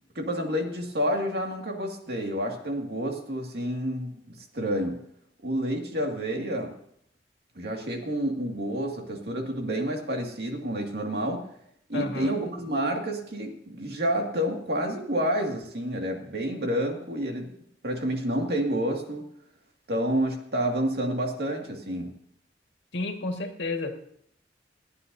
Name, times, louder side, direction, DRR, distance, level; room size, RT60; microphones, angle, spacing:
voice 1, 0.2-5.0 5.4-6.7 7.6-11.4 11.9-17.5 17.8-19.2 19.9-22.1, equal, 65° right, 2 dB, 2.2 m, -29 dB
voice 2, 11.9-12.4 22.9-24.0, left 2 dB, 80° left, 4 dB, 1.8 m, -31 dB
28.5 x 9.7 x 2.7 m, 0.68 s
head